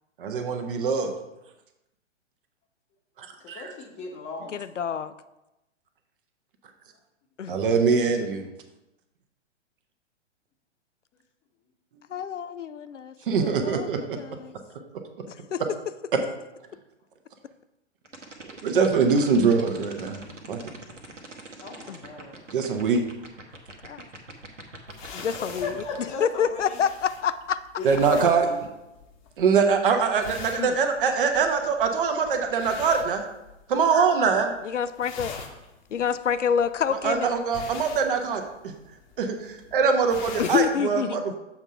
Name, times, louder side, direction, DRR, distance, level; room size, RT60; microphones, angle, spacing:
voice 1, 0.2-1.1 3.2-3.7 7.5-8.5 13.2-14.2 18.6-20.6 22.5-23.0 27.8-28.5 29.4-33.2 33.7-34.5 36.9-38.7 39.2-41.3, right 5 dB, 45° right, 5 dB, 1.0 m, -23 dB
voice 2, 3.4-4.5 21.6-22.4 25.2-26.8 27.8-28.6, left 3 dB, 20° left, 2 dB, 0.9 m, -36 dB
voice 3, 4.5-5.1 7.4-7.5 12.1-13.9 14.2-14.5 15.3-15.6 21.9-22.0 23.8-24.0 25.1-27.6 30.6-30.7 34.6-35.4 35.9-37.3 40.4-41.2, left 7 dB, 80° left, 13 dB, 0.5 m, -28 dB
sound 1, 18.0-26.0, right 2 dB, 85° right, 1.2 m, -42 dB
sound 2, 24.9-33.9 34.2-34.6 34.8-40.8, left 4 dB, 40° left, 1.0 m, -43 dB
7.1 x 3.6 x 5.5 m, 0.95 s
figure-of-eight pair, 115°, 36 cm